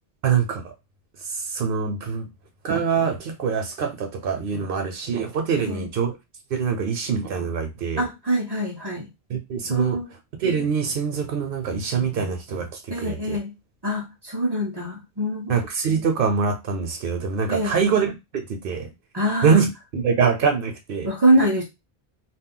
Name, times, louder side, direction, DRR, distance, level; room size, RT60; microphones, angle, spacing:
voice 1, 0.2-0.6 1.4-2.3 2.6-6.2 6.5-8.0 9.3-10.0 10.4-13.4 15.5-18.9 19.4-19.7 19.9-21.1, right 6 dB, 65° right, 0.7 m, -24 dB
voice 2, 5.6-5.9 8.0-9.1 9.7-10.1 12.9-13.5 13.8-15.6 17.5-17.8 19.1-19.6 21.0-21.6, right 1 dB, 35° right, 0.4 m, -24 dB
2.2 x 2.0 x 3.6 m
omnidirectional pair, 1.0 m